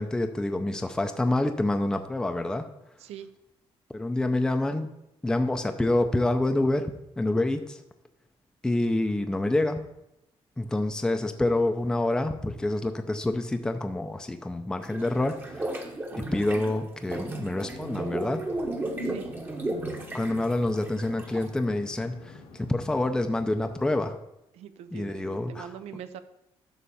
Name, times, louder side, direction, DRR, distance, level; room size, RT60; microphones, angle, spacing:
voice 1, 0.0-2.6 3.9-4.9 5.2-6.9 7.2-7.8 8.6-9.8 10.6-15.7 16.2-18.4 20.1-22.2 22.7-24.1 24.9-25.7, left 2 dB, 5° left, 6 dB, 0.5 m, -27 dB
voice 2, 3.0-3.3 19.0-19.3 24.5-26.2, right 9 dB, 80° right, 11 dB, 0.6 m, -42 dB
sound 1, 14.8-21.6, right 2 dB, 20° right, 1.0 m, -34 dB
sound 2, 17.7-24.1, left 4 dB, 80° left, 1.9 m, -48 dB
11.0 x 3.8 x 6.9 m, 0.87 s
cardioid pair, 165°, 11 cm